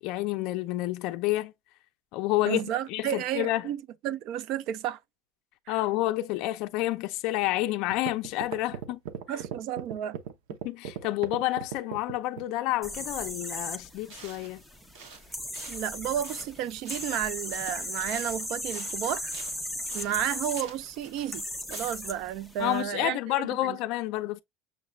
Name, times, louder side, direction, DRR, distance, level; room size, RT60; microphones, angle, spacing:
voice 1, 0.0-1.5 2.1-3.7 5.7-9.0 10.6-14.6 22.6-24.4, left 17 dB, 50° left, 0.4 m, -29 dB
voice 2, 2.4-5.0 5.7-5.8 9.3-10.2 15.7-19.3 19.9-23.8, right 11 dB, 45° right, 0.3 m, -32 dB
sound 1, 7.4-7.5 7.9-12.6, right 9 dB, 90° right, 0.7 m, -37 dB
sound 2, 12.8-22.8, left 1 dB, ahead, 0.6 m, -37 dB
sound 3, 13.8-13.9 14.1-14.7 14.9-17.3 17.5-22.1, right 5 dB, 70° right, 1.3 m, -48 dB
6.4 x 2.3 x 3.1 m
cardioid pair, 175°, 0 cm